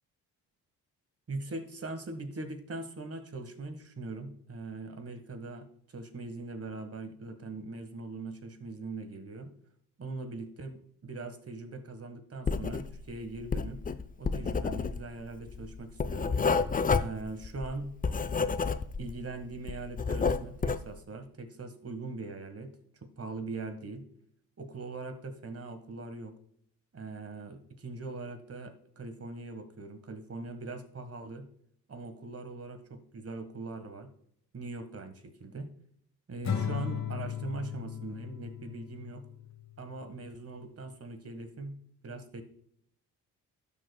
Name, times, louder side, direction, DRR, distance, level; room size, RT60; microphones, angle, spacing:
voice 1, 1.3-9.5 10.0-13.8 14.2-16.4 17.0-17.9 19.0-22.7 23.0-24.1 24.6-26.3 26.9-31.5 31.9-34.1 34.5-35.7 36.3-39.2 39.8-41.8 42.0-42.4, right 3 dB, 30° right, 9 dB, 1.7 m, -41 dB
Writing, 12.5-13.1 13.4-19.2 19.5-20.9, left 5 dB, 20° left, 0.6 m, -30 dB
Acoustic guitar / Strum, 36.4-39.8, left 8 dB, 35° left, 1.5 m, -36 dB
16.5 x 6.7 x 2.3 m, 0.68 s
hypercardioid pair, 45°, 46 cm